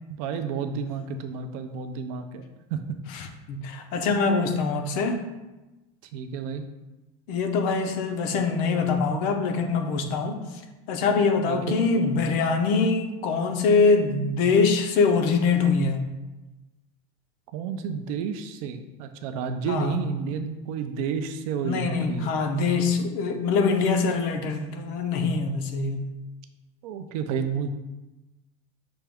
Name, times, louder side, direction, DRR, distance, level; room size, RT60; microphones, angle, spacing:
voice 1, 0.1-2.4 2.7-2.8 6.1-6.6 11.4-11.9 17.5-22.3 26.8-27.7, right 6 dB, 55° right, 7 dB, 0.4 m, -31 dB
voice 2, 3.1-5.2 7.3-10.4 10.9-16.0 19.7-19.9 21.6-26.0, left 4 dB, 45° left, 6 dB, 0.4 m, -24 dB
6.0 x 2.2 x 3.4 m, 1.1 s
cardioid pair, 175°, 21 cm